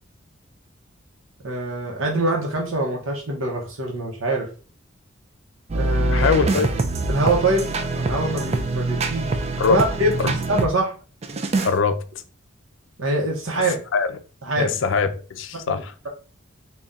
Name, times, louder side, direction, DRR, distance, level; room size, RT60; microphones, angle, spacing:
voice 1, 1.4-4.5 5.7-6.3 7.1-7.7 8.0-9.4 9.7-10.1 10.5-10.9 13.0-13.8 14.5-14.7 15.7-16.1, right 2 dB, 80° right, 0.8 m, -24 dB
sound 1, 5.7-10.7 11.2-11.7, right 2 dB, 30° right, 0.3 m, -24 dB
voice 2, 6.1-6.7 9.6-9.8 10.2-10.3 11.6-12.0 13.9-14.1 14.6-15.9, left 5 dB, 70° left, 0.4 m, -22 dB
3.6 x 2.3 x 3.9 m
head